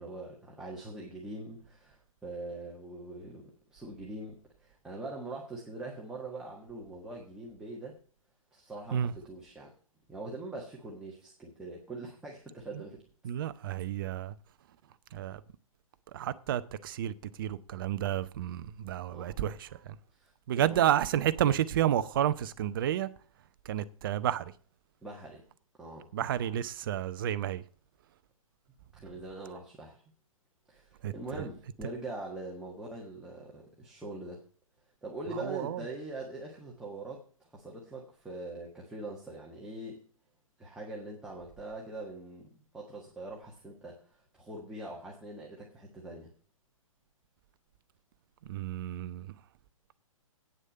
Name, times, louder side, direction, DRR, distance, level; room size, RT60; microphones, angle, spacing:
voice 1, 0.0-8.0 8.5-9.7 10.1-13.0 13.5-13.6 19.1-19.4 20.1-20.8 25.0-25.4 25.8-26.1 29.0-30.0 30.7-34.4 35.0-37.2 37.5-40.0 40.6-42.5 42.7-46.3, right 2 dB, 5° right, 1.6 m, -43 dB
voice 2, 13.2-14.3 15.1-15.4 16.1-19.7 20.5-23.1 23.7-24.5 26.1-27.6 31.0-31.4 35.4-35.8 48.5-49.3, right 11 dB, 40° right, 0.7 m, -30 dB
9.1 x 6.4 x 7.7 m
figure-of-eight pair, 125°, 18 cm